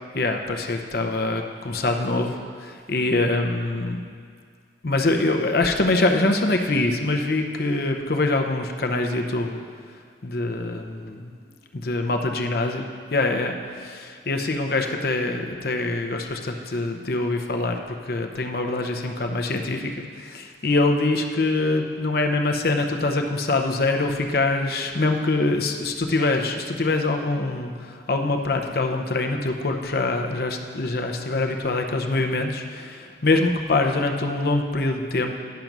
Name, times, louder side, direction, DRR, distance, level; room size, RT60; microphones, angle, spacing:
voice 1, 0.1-4.0 4.8-9.6 10.2-11.3 11.7-12.8 13.1-35.4, left 2 dB, 55° left, 3 dB, 0.7 m, -24 dB
10.5 x 5.3 x 6.0 m, 2.1 s
head